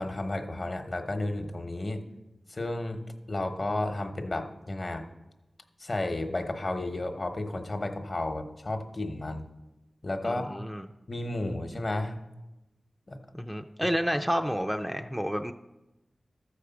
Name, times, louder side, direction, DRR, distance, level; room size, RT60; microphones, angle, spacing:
voice 1, 0.0-2.0 2.5-3.0 3.3-5.1 5.8-9.5 10.0-10.6 11.1-12.2 13.1-13.2 13.8-13.9, left 2 dB, 45° left, 6 dB, 1.0 m, -32 dB
voice 2, 10.2-10.9 13.3-15.5, equal, 5° right, 5 dB, 0.5 m, -30 dB
13.0 x 4.9 x 7.0 m, 1.0 s
wide cardioid pair, 65°, 0 cm